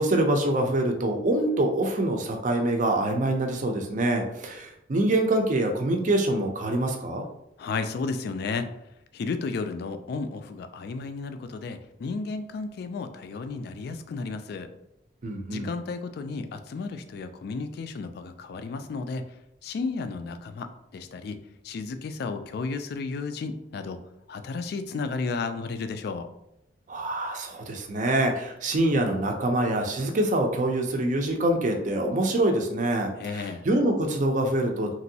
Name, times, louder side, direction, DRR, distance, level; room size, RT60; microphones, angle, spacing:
voice 1, 0.0-7.3 15.2-15.7 26.9-34.9, right 1 dB, 45° right, 3 dB, 0.4 m, -25 dB
voice 2, 7.6-8.7 9.1-14.7 15.5-19.3 19.6-21.4 21.6-24.0 24.3-26.3 33.2-33.7, left 4 dB, 60° left, 9 dB, 0.3 m, -33 dB
3.0 x 2.6 x 2.7 m, 0.81 s
head